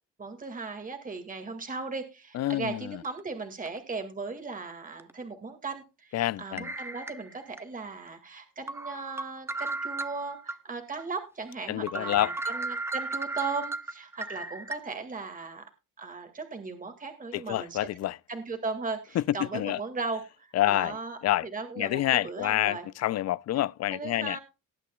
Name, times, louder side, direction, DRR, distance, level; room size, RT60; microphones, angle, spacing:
voice 1, 0.2-15.7 16.0-17.9 18.3-21.2 21.5-22.9 23.9-24.4, right 4 dB, 25° right, 2.0 m, -37 dB
voice 2, 2.3-3.0 6.1-6.7 11.7-12.4 17.3-18.2 19.1-19.8 20.5-21.0 21.2-21.5 21.8-24.4, left 14 dB, 60° left, 0.5 m, -28 dB
sound 1, 3.0-3.2 3.7-3.8 5.0-5.1 6.6-7.6 8.1-8.2 8.7-10.6 11.0-11.1 11.5-11.6 11.9-14.8, right 2 dB, 10° right, 0.9 m, -35 dB
19.0 x 8.3 x 2.3 m
cardioid pair, 90°, 30 cm